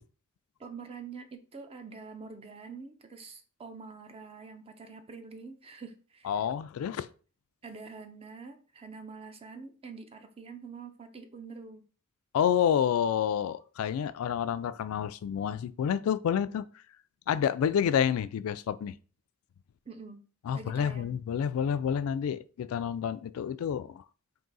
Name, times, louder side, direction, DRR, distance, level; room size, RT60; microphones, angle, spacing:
voice 1, 0.6-6.5 7.6-11.8 19.9-20.2 20.5-21.2, right 4 dB, 30° right, 0.5 m, -46 dB
voice 2, 6.2-7.1 12.3-16.6 17.3-18.9 20.5-24.0, left 8 dB, 90° left, 0.3 m, -29 dB
3.7 x 2.6 x 3.9 m
head